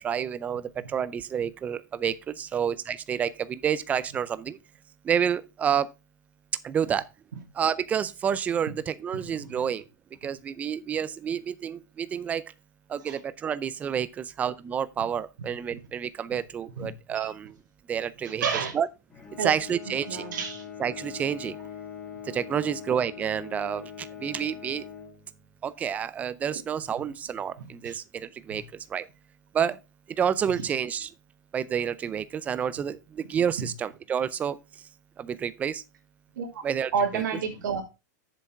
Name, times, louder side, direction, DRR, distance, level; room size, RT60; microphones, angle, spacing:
voice 1, 0.0-4.6 5.0-5.9 6.6-7.0 7.6-9.8 10.2-12.4 12.9-17.5 17.9-18.4 18.7-18.9 19.4-20.3 20.8-21.6 22.3-24.8 25.6-28.6 28.9-29.1 29.5-29.8 30.2-31.1 31.5-34.6 35.2-35.8 36.6-37.2, right 8 dB, 15° right, 0.4 m, -29 dB
voice 2, 18.4-18.7 19.4-19.5 20.1-20.6 27.8-28.0 28.5-28.6 30.6-30.7 33.6-33.7 36.4-36.6 36.9-37.8, right 6 dB, 90° right, 2.6 m, -29 dB
Bowed string instrument, 19.1-25.8, left 8 dB, 15° left, 1.9 m, -42 dB
7.2 x 6.7 x 4.6 m
supercardioid pair, 155°, 10 cm